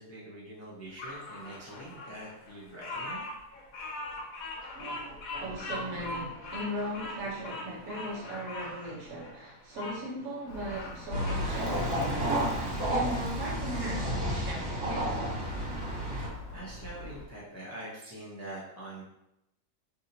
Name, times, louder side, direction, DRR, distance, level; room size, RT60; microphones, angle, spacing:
voice 1, 0.0-3.2 16.5-19.0, right 1 dB, 20° left, -6 dB, 0.4 m, -44 dB
Bird vocalization bird call bird song, 1.0-10.0 10.4-11.4, left 2 dB, 90° left, 1.1 m, -41 dB
voice 2, 4.7-15.2, right 1 dB, 85° right, -4 dB, 1.4 m, -38 dB
Alarm, 10.5-17.3, equal, 70° left, 0.9 m, -43 dB
sound 1, 11.1-16.3, equal, 60° right, 1.8 m, -31 dB
3.4 x 2.7 x 2.7 m, 0.86 s
omnidirectional pair, 1.4 m